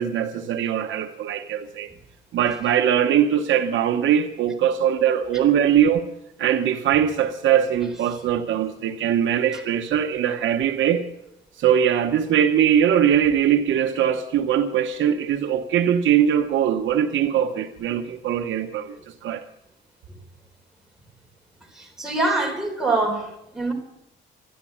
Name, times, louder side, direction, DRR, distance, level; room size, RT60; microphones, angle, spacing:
voice 1, 0.0-1.9 2.3-6.1 6.4-11.0 11.6-19.5, right 9 dB, 75° right, 1.0 m, -21 dB
voice 2, 21.7-23.7, right 2 dB, ahead, 3.7 m, -25 dB
13.5 x 11.5 x 8.5 m
cardioid pair, 90°, 20 cm